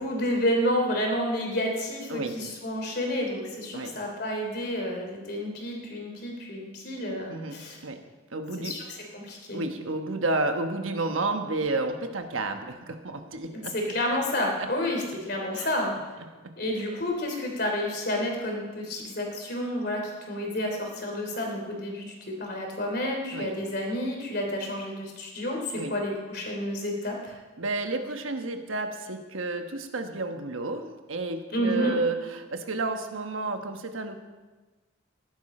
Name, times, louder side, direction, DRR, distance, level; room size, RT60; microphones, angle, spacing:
voice 1, 0.0-7.8 8.6-8.8 9.1-9.6 13.5-15.9 16.6-27.3 31.5-31.9, left 1 dB, 55° left, 1 dB, 3.3 m, -30 dB
voice 2, 7.3-8.0 8.3-8.8 9.5-13.7 14.6-14.7 15.5-15.7 16.2-16.5 23.3-23.5 25.7-26.0 27.6-34.1, right 2 dB, 90° right, 6 dB, 1.2 m, -31 dB
14.5 x 11.5 x 4.4 m, 1.3 s
head